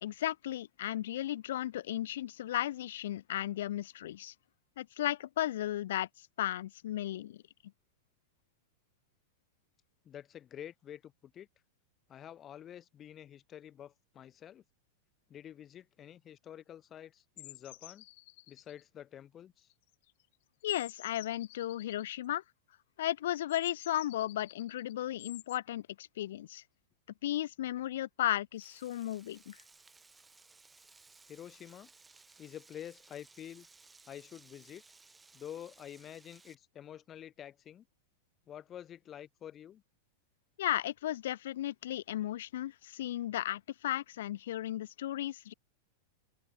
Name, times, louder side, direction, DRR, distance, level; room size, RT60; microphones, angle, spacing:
voice 1, 0.0-4.3 4.8-7.4 20.6-22.4 23.0-26.6 27.2-29.6 40.6-45.5, left 13 dB, 75° left, 0.4 m, -35 dB
voice 2, 10.0-11.5 12.1-14.6 15.3-18.0 18.5-19.7 31.3-31.9 32.4-33.7 34.1-34.8 35.3-37.9 38.5-39.8, left 10 dB, 25° left, 3.2 m, -48 dB
sound 1, 17.4-18.8 19.6-20.2 20.6-22.1 23.5-25.6, left 19 dB, 60° left, 3.2 m, -52 dB
Frying (food), 28.5-36.6, right 3 dB, 10° right, 3.4 m, -60 dB
open air
supercardioid pair, 140°, 0 cm